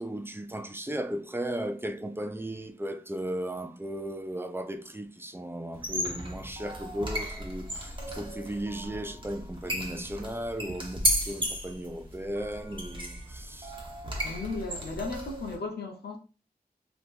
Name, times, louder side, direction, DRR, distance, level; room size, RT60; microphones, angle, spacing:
voice 1, 0.0-13.7, right 1 dB, 15° right, 0.6 m, -36 dB
sound 1, 5.7-15.6, equal, 30° right, 1.2 m, -34 dB
voice 2, 14.2-16.2, left 3 dB, 80° left, 0.8 m, -35 dB
2.9 x 2.5 x 3.6 m
cardioid pair, 55°, 17 cm